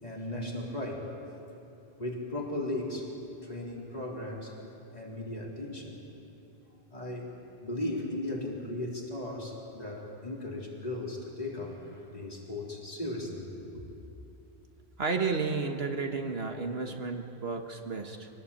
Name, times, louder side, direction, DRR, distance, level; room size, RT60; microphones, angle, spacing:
voice 1, 0.0-1.1 2.0-3.1 3.4-4.5 4.9-6.0 6.9-7.3 7.6-13.5 13.7-13.8, left 1 dB, 35° left, -3 dB, 4.0 m, -36 dB
voice 2, 15.0-18.3, right 4 dB, 65° right, 4 dB, 1.7 m, -32 dB
25.0 x 18.5 x 8.6 m, 2.8 s
omnidirectional pair, 1.1 m